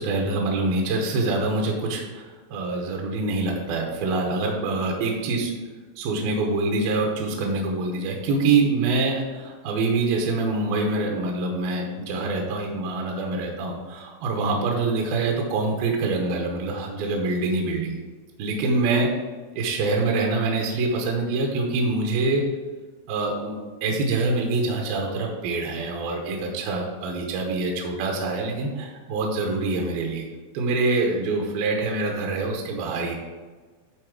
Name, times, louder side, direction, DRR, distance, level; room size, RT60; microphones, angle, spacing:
voice 1, 0.0-5.5 6.0-18.0 18.4-19.1 19.5-22.4 23.1-30.2 30.5-33.2, right 3 dB, 75° right, 1 dB, 2.2 m, -25 dB
11.5 x 4.2 x 4.7 m, 1.4 s
omnidirectional pair, 5.4 m